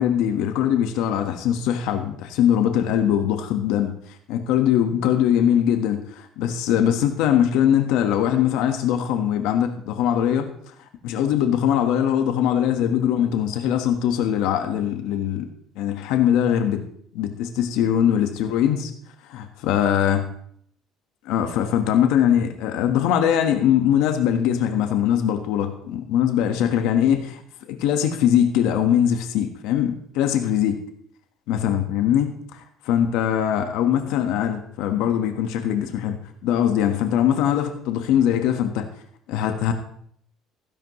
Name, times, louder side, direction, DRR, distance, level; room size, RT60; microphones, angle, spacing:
voice 1, 0.0-3.9 4.3-10.5 11.0-15.5 15.7-16.8 17.1-18.9 19.3-20.2 21.2-27.4 27.7-30.8 31.5-36.2 36.4-38.9 39.3-39.7, left 10 dB, 85° left, 6 dB, 1.5 m, -21 dB
15.0 x 10.5 x 3.2 m, 0.64 s
cardioid pair, 130°, 0 cm